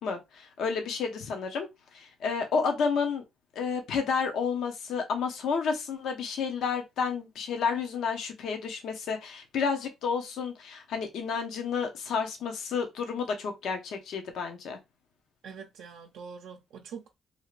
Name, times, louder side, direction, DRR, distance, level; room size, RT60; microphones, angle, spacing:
voice 1, 0.0-3.2 3.5-14.8, left 5 dB, 75° left, 0.7 m, -31 dB
voice 2, 15.4-17.1, right 6 dB, 85° right, 0.5 m, -44 dB
2.7 x 2.4 x 3.0 m
cardioid pair, 90°, 0 cm